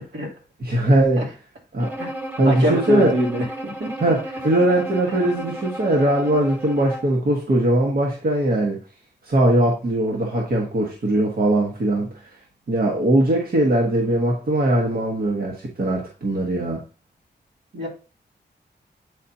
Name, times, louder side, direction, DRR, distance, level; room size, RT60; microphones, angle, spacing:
voice 1, 0.6-1.2 1.7-1.9 2.4-3.1 4.0-8.8 9.2-12.1 12.7-16.8, right 1 dB, 60° right, -1 dB, 1.5 m, -20 dB
Bowed string instrument, 1.8-7.2, right 1 dB, 10° right, 1.2 m, -33 dB
voice 2, 2.4-3.9 17.7-17.9, equal, 80° right, -2 dB, 2.7 m, -24 dB
8.6 x 4.2 x 2.8 m, 0.35 s
wide cardioid pair, 95°, 18 cm